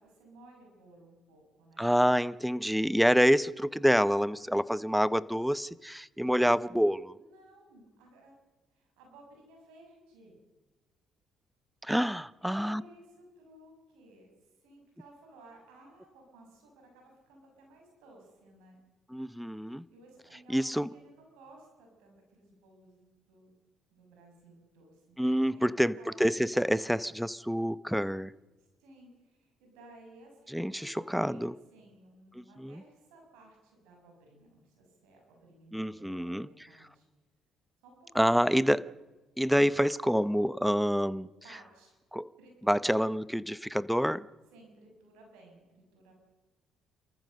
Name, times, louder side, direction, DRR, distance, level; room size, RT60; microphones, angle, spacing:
voice 1, 0.0-2.1 7.1-8.3 8.7-10.4 12.4-14.3 14.6-18.8 19.7-23.6 23.9-26.2 28.6-31.4 31.7-37.1 37.8-38.8 41.4-41.9 42.4-43.0 44.5-46.1, right 2 dB, 80° right, 6.8 m, -57 dB
voice 2, 1.8-7.2 11.8-12.8 19.1-19.9 20.5-20.9 25.2-28.3 30.5-31.5 32.3-32.8 35.7-36.5 38.1-38.8 39.4-41.3 42.1-42.3 42.7-44.3, equal, ahead, 0.8 m, -27 dB
29.5 x 14.5 x 6.6 m
hypercardioid pair, 60°, 0 cm